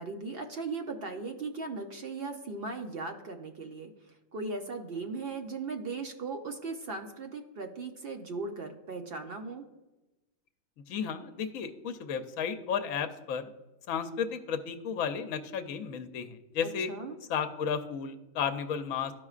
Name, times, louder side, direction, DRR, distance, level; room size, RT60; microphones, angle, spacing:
voice 1, 0.0-3.9 4.3-9.7 16.6-17.2, right 3 dB, 55° right, 4 dB, 0.8 m, -38 dB
voice 2, 10.9-13.5 13.9-16.9 17.3-19.1, left 7 dB, 75° left, 8 dB, 1.0 m, -33 dB
13.5 x 5.0 x 2.4 m, 1.0 s
omnidirectional pair, 1.4 m